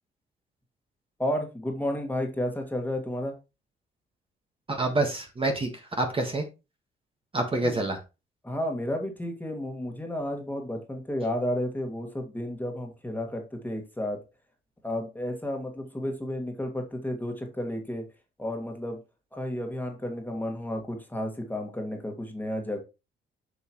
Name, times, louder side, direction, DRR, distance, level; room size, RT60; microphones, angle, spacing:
voice 1, 1.2-3.4 7.6-7.8 8.4-14.2 14.8-18.1 18.4-19.0 19.3-22.8, left 1 dB, 10° left, 2.0 m, -32 dB
voice 2, 4.7-5.7 6.0-6.4 7.3-8.0, right 2 dB, 25° right, 1.6 m, -27 dB
8.0 x 5.5 x 3.1 m
cardioid pair, 90°, 20 cm